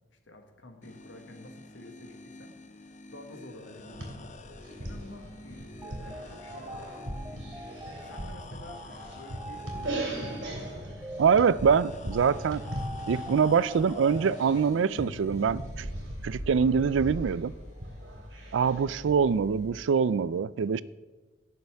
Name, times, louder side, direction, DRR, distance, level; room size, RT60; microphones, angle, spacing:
voice 1, 0.1-2.5 3.1-4.3 4.8-10.5 18.9-19.1, left 1 dB, 80° left, 1.5 m, -50 dB
sound 1, 0.8-19.8, left 2 dB, 40° left, 0.6 m, -49 dB
sound 2, 3.7-19.1, right 1 dB, 70° right, 2.9 m, -39 dB
sound 3, 5.8-15.6, right 1 dB, 10° right, 0.3 m, -45 dB
voice 2, 11.2-12.6 13.1-15.9 16.2-17.5 18.5-20.8, right 6 dB, 85° right, 0.4 m, -24 dB
17.5 x 6.8 x 3.5 m
head